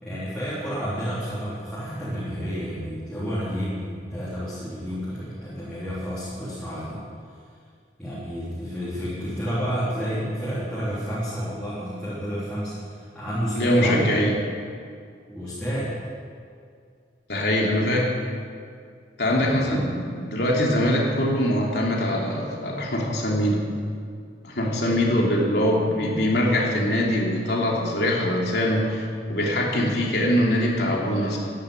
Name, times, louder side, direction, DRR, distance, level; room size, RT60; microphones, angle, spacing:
voice 1, 0.0-7.0 8.0-14.1 15.3-15.9 19.3-19.7, equal, 5° left, -11 dB, 3.6 m, -30 dB
voice 2, 13.5-14.3 17.3-18.1 19.2-23.6 24.4-31.4, left 1 dB, 65° left, -2 dB, 3.2 m, -23 dB
14.0 x 10.5 x 8.3 m, 2.2 s
head